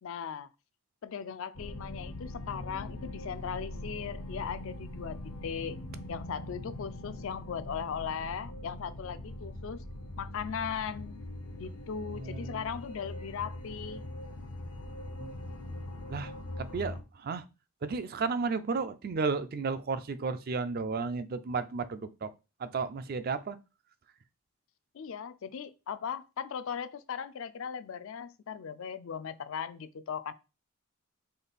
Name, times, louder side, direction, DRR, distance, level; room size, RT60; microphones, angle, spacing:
voice 1, 0.0-0.5 1.0-5.8 6.1-9.8 10.2-11.2 11.6-14.1 24.9-30.3, left 7 dB, 65° left, 0.4 m, -38 dB
sound 1, 1.5-17.0, left 1 dB, 85° left, 0.8 m, -42 dB
voice 2, 12.1-12.7 15.2-15.4 16.1-16.3 16.7-17.4 17.8-22.3 22.6-23.6, right 4 dB, 40° right, 0.3 m, -33 dB
5.1 x 2.4 x 4.0 m
head